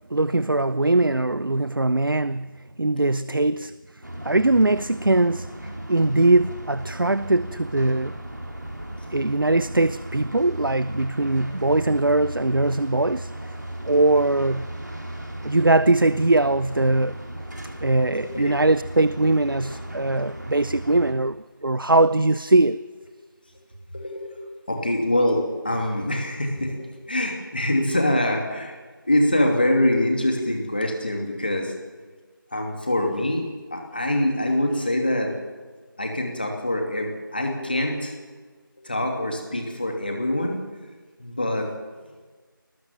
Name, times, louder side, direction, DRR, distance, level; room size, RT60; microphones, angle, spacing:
voice 1, 0.1-3.7 4.2-5.5 5.9-8.1 9.1-13.3 13.8-14.7 15.4-17.2 17.8-22.8, right 2 dB, 70° right, 0.6 m, -21 dB
voice 2, 3.1-3.5 9.2-9.3 17.7-18.6 20.1-20.2 23.9-28.8 29.0-31.7 32.5-35.3 36.0-38.1 38.8-40.6 41.2-41.7, left 1 dB, 25° left, 2.8 m, -25 dB
sound 1, 4.0-21.1, right 1 dB, 55° right, 4.2 m, -36 dB
20.5 x 20.0 x 7.5 m
figure-of-eight pair, 175°, 12 cm